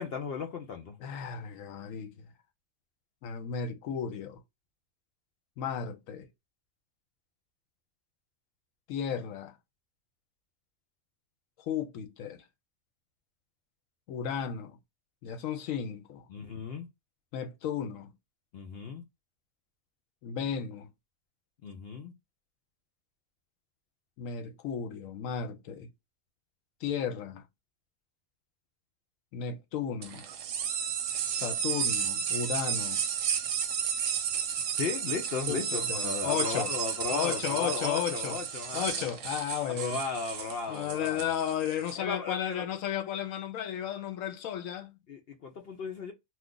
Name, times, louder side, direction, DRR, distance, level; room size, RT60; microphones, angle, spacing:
voice 1, 0.0-1.0 16.3-16.9 18.5-19.0 21.6-22.1 34.8-39.1 39.7-41.3 42.0-42.7 45.1-46.1, left 5 dB, 65° left, 0.6 m, -36 dB
voice 2, 1.0-2.3 3.2-4.4 5.6-6.3 8.9-9.5 11.6-12.4 14.1-14.8 15.2-16.3 17.3-18.1 20.2-20.9 24.2-25.9 26.8-27.4 29.3-30.2 31.3-33.0 35.5-36.7 37.1-38.4 38.7-40.0 40.7-44.9, left 8 dB, 80° left, 1.0 m, -34 dB
sound 1, 30.0-42.0, right 7 dB, 70° right, 0.9 m, -33 dB
2.4 x 2.4 x 3.7 m
omnidirectional pair, 1.4 m